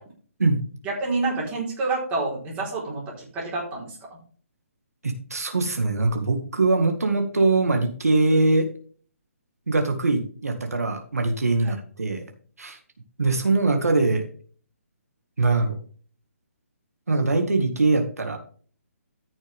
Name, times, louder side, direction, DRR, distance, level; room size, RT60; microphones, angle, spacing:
voice 1, 0.8-4.0 11.6-11.7, right 3 dB, 15° right, -4 dB, 4.3 m, -28 dB
voice 2, 5.0-8.7 9.7-12.2 12.6-12.8 13.2-14.3 15.4-15.8 17.1-18.4, right 3 dB, 85° right, 5 dB, 2.0 m, -22 dB
14.0 x 6.4 x 3.6 m, 0.43 s
hypercardioid pair, 150°, 8 cm